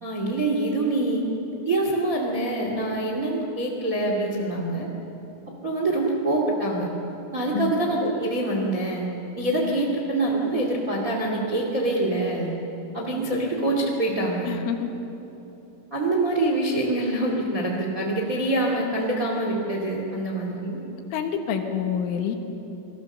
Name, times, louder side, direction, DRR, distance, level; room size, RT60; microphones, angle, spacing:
voice 1, 0.0-1.2 1.6-4.9 5.6-6.9 7.3-9.1 9.3-12.5 12.9-14.5 15.9-20.8, right 2 dB, 35° right, 0 dB, 1.3 m, -25 dB
voice 2, 14.5-14.9 21.1-22.4, left 8 dB, 80° left, 5 dB, 3.9 m, -27 dB
29.0 x 19.5 x 6.7 m, 3.0 s
omnidirectional pair, 5.7 m